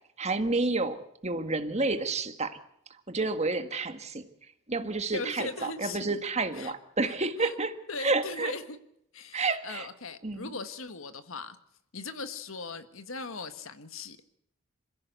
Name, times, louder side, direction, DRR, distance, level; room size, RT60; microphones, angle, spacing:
voice 1, 0.2-2.6 3.1-4.2 4.7-5.5 5.8-8.5 9.3-9.9 10.2-10.5, right 3 dB, 30° right, 8 dB, 1.8 m, -30 dB
voice 2, 5.1-6.2 6.5-6.7 7.1-7.2 7.4-7.6 7.9-8.8 9.1-11.6 11.9-14.4, left 3 dB, 70° left, 10 dB, 1.6 m, -39 dB
27.0 x 16.0 x 8.3 m, 0.77 s
head